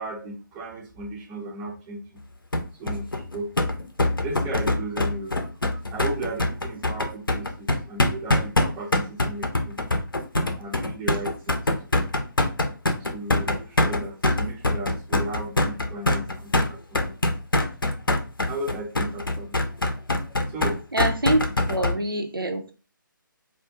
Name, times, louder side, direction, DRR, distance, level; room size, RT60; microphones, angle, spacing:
voice 1, 0.0-2.0 2.8-3.6 4.2-5.5 5.7-9.8 10.6-12.1 13.0-17.2 18.5-19.6 20.5-20.8, right 2 dB, 10° right, 0.4 m, -35 dB
sound 1, 2.5-21.9, left 2 dB, 80° left, 0.5 m, -24 dB
voice 2, 20.9-22.7, right 1 dB, 85° right, 0.6 m, -25 dB
2.5 x 2.1 x 3.5 m
figure-of-eight pair, 140°, 11 cm